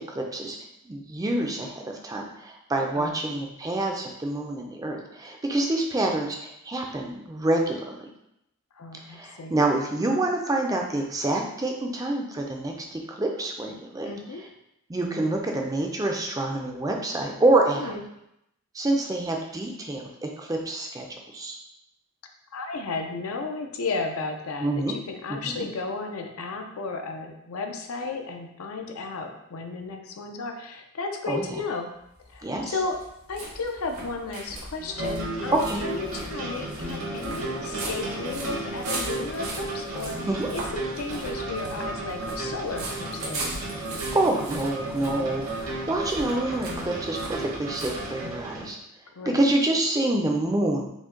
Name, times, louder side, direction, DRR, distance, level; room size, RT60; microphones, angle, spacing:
voice 1, 0.1-0.6 0.8-8.1 9.1-14.1 14.9-17.9 18.7-21.5 24.6-24.9 25.4-25.6 31.3-31.6 32.4-32.7 35.5-35.8 40.3-40.5 44.1-48.8 49.3-50.9, right 2 dB, 15° right, 1 dB, 0.4 m, -27 dB
voice 2, 8.7-9.5 14.1-14.4 17.8-18.0 22.5-31.9 32.3-33.0 33.3-43.5 49.1-49.4, left 3 dB, 75° left, 4 dB, 0.5 m, -34 dB
sound 1, 32.0-48.5, right 2 dB, 85° right, 1.2 m, -39 dB
sound 2, 34.8-48.7, right 2 dB, 65° right, 0.9 m, -34 dB
4.9 x 2.2 x 3.7 m, 0.80 s
head